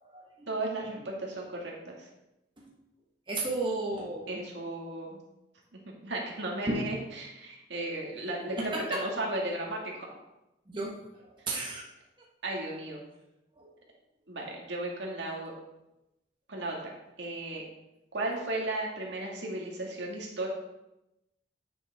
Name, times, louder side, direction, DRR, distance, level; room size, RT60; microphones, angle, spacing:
voice 1, 0.5-2.1 4.3-5.2 5.9-8.6 8.9-10.2 12.4-13.0 14.3-15.5 16.5-16.9 17.2-17.6 18.1-20.5, right 2 dB, 70° right, -1 dB, 2.0 m, -35 dB
voice 2, 3.3-4.4 6.7-6.9 8.6-9.0 10.7-11.8 13.6-13.7, right 2 dB, 25° right, -3 dB, 1.3 m, -33 dB
9.5 x 6.9 x 3.6 m, 0.92 s
head